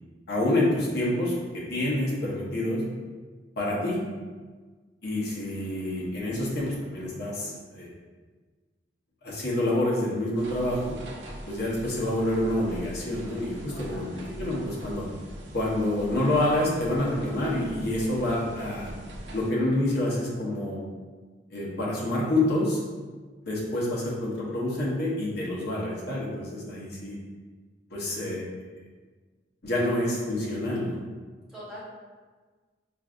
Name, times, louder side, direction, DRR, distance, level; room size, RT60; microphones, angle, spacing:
voice 1, 0.3-2.8 3.6-4.0 5.0-7.9 9.2-11.0 11.5-15.1 15.5-18.9 19.3-20.8 21.5-22.8 23.4-27.2 27.9-28.4 29.6-31.0, left 1 dB, 65° left, -5 dB, 0.9 m, -27 dB
sound 1, 10.4-19.5, equal, 75° right, 0.6 m, -42 dB
voice 2, 13.7-14.5 31.5-31.8, equal, 5° right, -11 dB, 1.3 m, -44 dB
4.7 x 2.6 x 2.4 m, 1.4 s
head